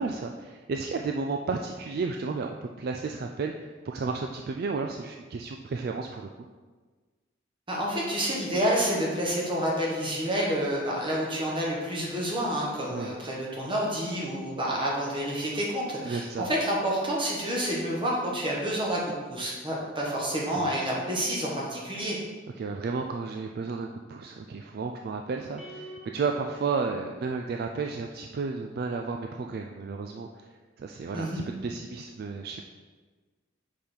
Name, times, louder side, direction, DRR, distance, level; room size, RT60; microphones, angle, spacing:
voice 1, 0.0-6.5 12.9-13.1 16.1-16.5 20.5-20.7 22.6-32.6, right 4 dB, 50° right, 3 dB, 0.3 m, -33 dB
voice 2, 7.7-19.0 19.3-22.2 31.1-31.4, equal, 25° right, -3 dB, 1.4 m, -29 dB
sound 1, 25.6-28.0, right 1 dB, 5° right, 1.5 m, -47 dB
5.4 x 5.0 x 4.5 m, 1.4 s
head